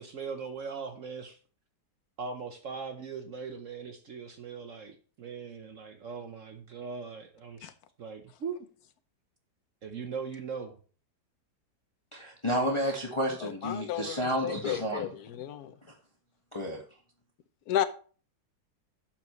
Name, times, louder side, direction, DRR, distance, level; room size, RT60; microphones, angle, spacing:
voice 1, 0.0-1.4 2.2-7.7 8.0-8.7 9.8-10.8, right 5 dB, 55° right, 1.1 m, -40 dB
voice 2, 12.1-15.1 15.8-15.9 16.5-16.8, equal, 20° left, 1.4 m, -31 dB
voice 3, 13.4-14.2 14.4-15.7 17.7-17.8, left 11 dB, 65° left, 1.3 m, -32 dB
11.5 x 7.4 x 3.1 m
omnidirectional pair, 1.8 m